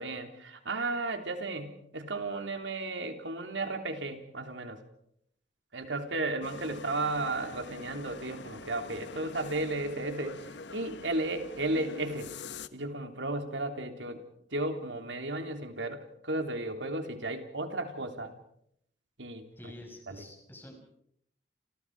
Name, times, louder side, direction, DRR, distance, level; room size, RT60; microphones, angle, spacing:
voice 1, 0.0-4.8 5.7-10.4 10.7-12.3 12.7-14.2 14.5-18.3 19.2-19.4 20.1-20.2, right 2 dB, 90° right, 6 dB, 3.4 m, -34 dB
sound 1, 6.4-12.7, left 4 dB, 75° left, 1.2 m, -45 dB
voice 2, 19.5-21.0, left 1 dB, 10° left, 3 dB, 5.7 m, -49 dB
29.5 x 28.0 x 4.9 m, 0.73 s
head